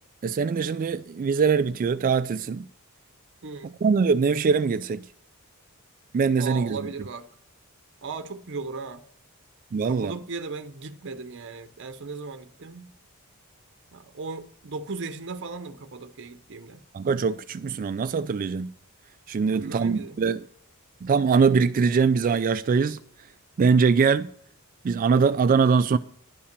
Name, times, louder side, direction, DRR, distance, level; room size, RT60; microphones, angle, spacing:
voice 1, 0.2-2.7 3.8-5.1 6.1-6.8 9.7-10.1 16.9-18.7 19.3-20.4 21.0-23.0 23.6-24.3 24.8-26.0, right 5 dB, 40° right, 0.3 m, -22 dB
voice 2, 3.4-3.8 6.4-7.3 8.0-9.0 9.8-12.9 13.9-16.8 19.5-20.2, right 4 dB, 55° right, 0.7 m, -37 dB
11.0 x 5.6 x 6.6 m
head